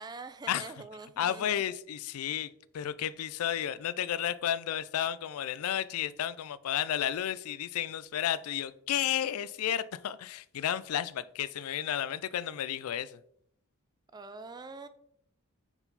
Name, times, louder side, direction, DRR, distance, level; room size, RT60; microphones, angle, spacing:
voice 1, 0.0-1.7 14.1-14.9, right 3 dB, 20° right, 11 dB, 0.3 m, -44 dB
voice 2, 1.2-13.2, left 10 dB, 85° left, 17 dB, 0.3 m, -32 dB
5.7 x 4.4 x 4.0 m, 0.72 s
head